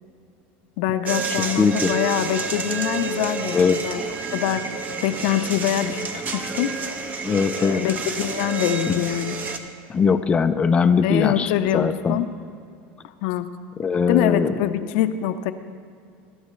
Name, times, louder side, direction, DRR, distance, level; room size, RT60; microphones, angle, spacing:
voice 1, 0.8-4.0 4.3-6.1 6.3-6.8 7.6-9.4 11.0-12.3 13.2-13.5 14.1-15.5, left 11 dB, 70° left, 10 dB, 0.8 m, -24 dB
sound 1, 1.1-9.6, right 4 dB, 30° right, 1.1 m, -29 dB
voice 2, 1.6-2.0 3.5-3.8 7.2-7.8 8.9-9.0 9.9-12.2 13.8-14.5, left 5 dB, 20° left, 8 dB, 0.6 m, -20 dB
23.5 x 12.5 x 3.2 m, 2.4 s
supercardioid pair, 140°, 6 cm